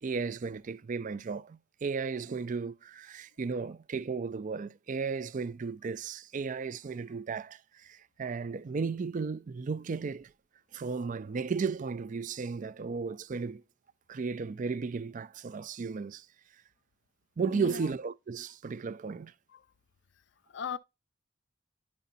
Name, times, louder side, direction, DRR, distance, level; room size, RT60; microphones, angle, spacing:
voice 1, 0.0-10.3 10.7-13.6 14.1-16.3 17.4-19.3, right 5 dB, 45° right, 0.4 m, -35 dB
voice 2, 17.5-17.9 19.5-19.7 20.5-20.8, left 6 dB, 70° left, 0.5 m, -38 dB
10.0 x 5.3 x 2.7 m
head